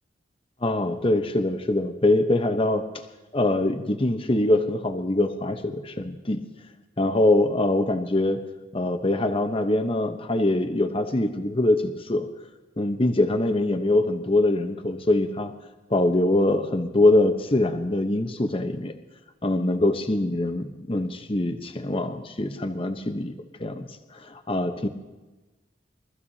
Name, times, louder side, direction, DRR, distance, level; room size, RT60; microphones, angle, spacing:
voice 1, 0.6-2.9 3.3-6.4 7.0-8.4 8.7-12.3 12.8-15.5 15.9-18.9 19.4-23.3 23.6-24.9, left 2 dB, 30° left, 7 dB, 1.0 m, -23 dB
23.5 x 14.5 x 2.8 m, 1.2 s
head